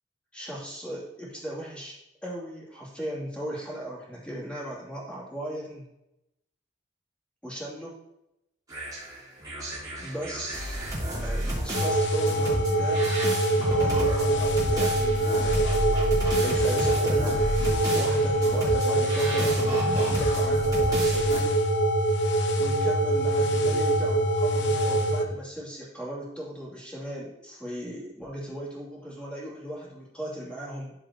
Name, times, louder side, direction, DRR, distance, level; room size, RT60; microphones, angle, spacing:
voice 1, 0.3-2.0 2.2-5.8 7.4-8.0 9.8-10.8 11.2-13.2 13.5-15.7 16.0-17.4 17.9-21.6 22.6-30.9, right 1 dB, 5° left, -5 dB, 2.5 m, -37 dB
sound 1, 8.7-21.4, right 1 dB, 20° right, 3.2 m, -32 dB
sound 2, 11.7-25.2, right 1 dB, 90° left, 0.9 m, -24 dB
13.0 x 5.0 x 2.9 m, 0.87 s
head